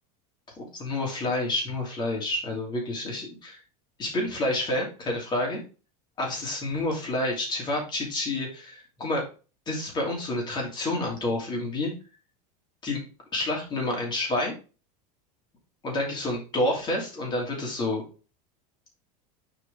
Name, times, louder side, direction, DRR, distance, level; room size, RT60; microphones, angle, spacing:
voice 1, 0.6-3.6 4.0-5.6 6.2-9.2 9.7-11.9 12.8-13.0 13.3-14.5 15.8-18.0, left 1 dB, 20° left, -1 dB, 2.9 m, -29 dB
6.2 x 4.8 x 3.8 m, 0.34 s
supercardioid pair, 150°, 19 cm